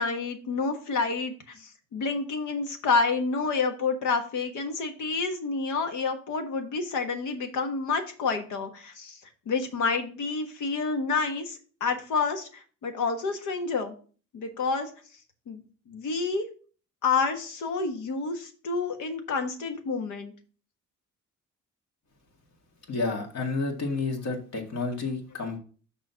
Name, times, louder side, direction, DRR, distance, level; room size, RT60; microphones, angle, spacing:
voice 1, 0.0-9.1 9.5-13.9 14.3-14.9 15.5-16.5 17.0-20.3, left 4 dB, 75° left, 5 dB, 1.4 m, -29 dB
voice 2, 22.9-25.6, left 3 dB, 60° left, 2 dB, 2.1 m, -30 dB
6.2 x 4.4 x 5.7 m, 0.40 s
cardioid pair, 90°, 30 cm